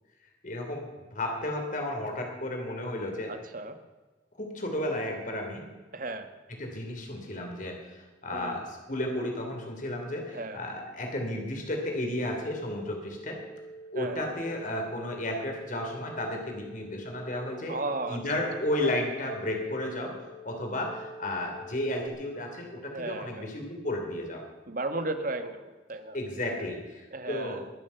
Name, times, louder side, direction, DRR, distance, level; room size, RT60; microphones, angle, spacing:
voice 1, 0.4-0.8 1.1-3.3 4.4-5.6 6.6-13.4 13.9-17.8 18.1-20.2 20.4-24.4 26.1-27.6, left 1 dB, 45° left, 2 dB, 3.0 m, -33 dB
voice 2, 3.3-3.8 5.9-6.3 8.3-8.6 10.3-10.6 13.9-14.4 17.7-18.2 18.8-19.0 22.9-23.5 24.7-26.2 27.1-27.6, right 2 dB, 50° right, 8 dB, 1.3 m, -35 dB
sound 1, 12.1-22.1, left 1 dB, 70° left, 1.5 m, -47 dB
22.0 x 7.4 x 6.9 m, 1.2 s
head